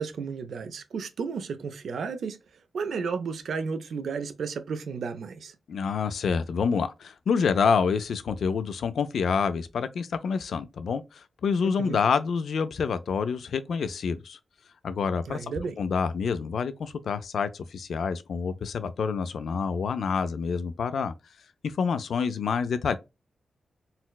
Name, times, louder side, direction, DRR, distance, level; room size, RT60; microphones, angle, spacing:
voice 1, 0.0-2.4 2.7-5.6 11.6-12.0 15.3-15.8, right 5 dB, 75° right, 0.4 m, -33 dB
voice 2, 5.7-14.4 14.8-15.5 15.8-21.1 21.6-23.0, left 6 dB, 75° left, 0.3 m, -27 dB
4.1 x 2.0 x 2.2 m
wide cardioid pair, 120°, 0 cm